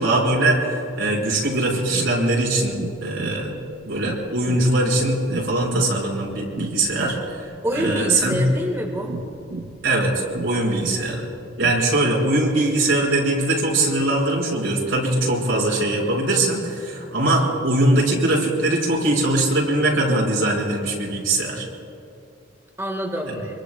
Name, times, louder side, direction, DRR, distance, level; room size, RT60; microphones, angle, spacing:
voice 1, 0.0-3.5 3.8-8.5 9.8-10.1 10.4-11.2 11.6-21.7 23.3-23.4, right 1 dB, 75° right, -3 dB, 5.1 m, -21 dB
sound 1, 1.8-11.9, right 3 dB, 55° right, 0.6 m, -36 dB
voice 2, 7.6-9.1 22.8-23.3, equal, 15° right, 0 dB, 1.5 m, -26 dB
26.0 x 23.0 x 2.3 m, 2.4 s
head